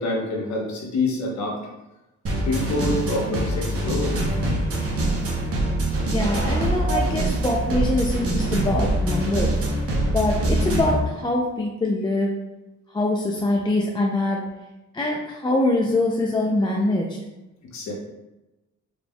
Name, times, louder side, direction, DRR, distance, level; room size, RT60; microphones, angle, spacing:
voice 1, 0.0-1.6 2.3-4.1 4.4-4.5 6.9-7.0 17.6-17.9, left 2 dB, 65° left, -2 dB, 1.1 m, -27 dB
sound 1, 2.3-11.0, right 1 dB, 50° right, 0.9 m, -24 dB
voice 2, 6.1-9.6 10.1-12.3 12.9-14.4 14.9-17.1, left 2 dB, 15° left, -1 dB, 0.4 m, -24 dB
4.1 x 3.3 x 2.2 m, 1.0 s
cardioid pair, 90°, 30 cm